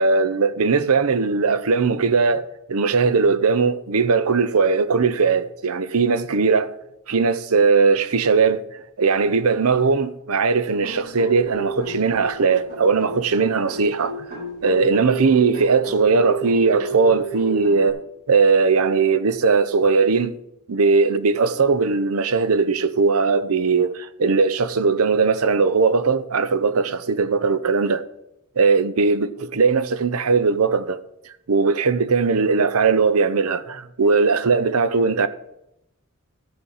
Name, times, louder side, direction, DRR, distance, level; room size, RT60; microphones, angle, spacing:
voice 1, 0.0-6.7 7.1-14.3 14.6-18.0 18.3-20.3 20.7-28.0 28.6-31.0 31.5-35.3, right 4 dB, 85° right, 0.7 m, -19 dB
sound 1, 10.8-17.9, right 4 dB, 45° right, 4.8 m, -31 dB
14.0 x 7.8 x 4.9 m
head